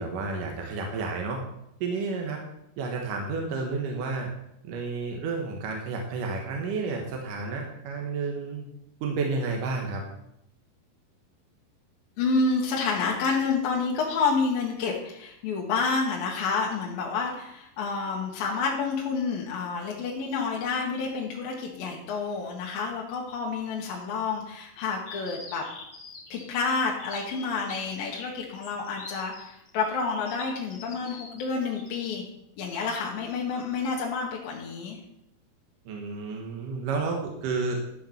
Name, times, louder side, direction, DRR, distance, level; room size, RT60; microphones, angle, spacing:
voice 1, 0.0-1.4 1.8-2.4 2.8-4.3 4.6-8.7 9.0-10.0 35.9-37.8, right 4 dB, 65° right, 1 dB, 2.6 m, -31 dB
voice 2, 12.2-25.6 26.3-32.2 32.6-35.0, left 4 dB, 75° left, -2 dB, 3.1 m, -29 dB
sound 1, 25.0-32.1, left 3 dB, 45° left, 1.1 m, -45 dB
12.0 x 5.6 x 7.2 m, 0.81 s
omnidirectional pair, 4.4 m